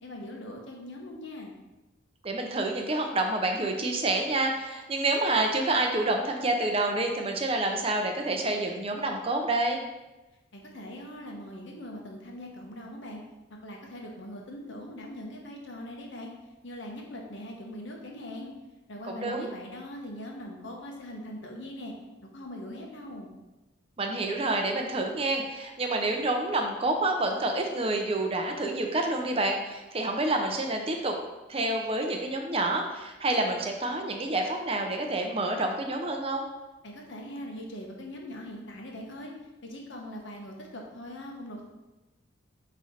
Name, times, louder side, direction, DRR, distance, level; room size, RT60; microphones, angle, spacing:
voice 1, 0.0-1.6 10.5-13.2 13.5-16.3 16.6-18.5 18.9-21.9 22.2-23.3 36.8-39.3 39.6-41.6, left 1 dB, 60° left, 0 dB, 1.1 m, -41 dB
voice 2, 2.2-9.8 19.0-19.5 24.0-31.2 31.5-36.5, right 2 dB, 30° right, 3 dB, 0.6 m, -28 dB
8.5 x 3.2 x 4.2 m, 1.1 s
head